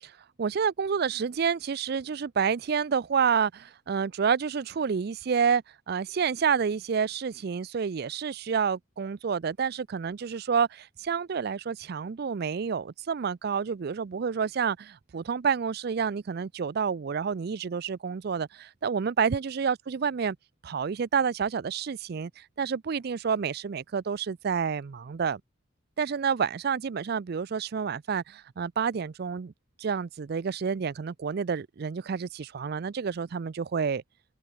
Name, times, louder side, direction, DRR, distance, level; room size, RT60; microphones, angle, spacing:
voice 1, 0.4-20.4 20.6-25.4 26.0-29.5 29.8-34.0, right 6 dB, 55° right, 0.4 m, -29 dB
open air
head